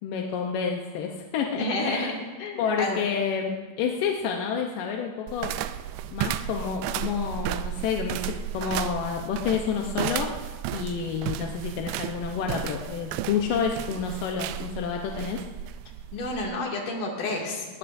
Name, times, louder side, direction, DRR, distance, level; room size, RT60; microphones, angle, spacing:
voice 1, 0.0-2.1 2.6-5.5 6.1-10.3 10.7-15.4, left 6 dB, 70° left, 1 dB, 2.2 m, -29 dB
voice 2, 1.5-3.0 16.1-17.8, left 2 dB, 55° left, -1 dB, 3.7 m, -30 dB
sound 1, 5.3-16.5, right 11 dB, 80° right, 2.4 m, -33 dB
19.5 x 19.0 x 2.7 m, 1.3 s
omnidirectional pair, 4.8 m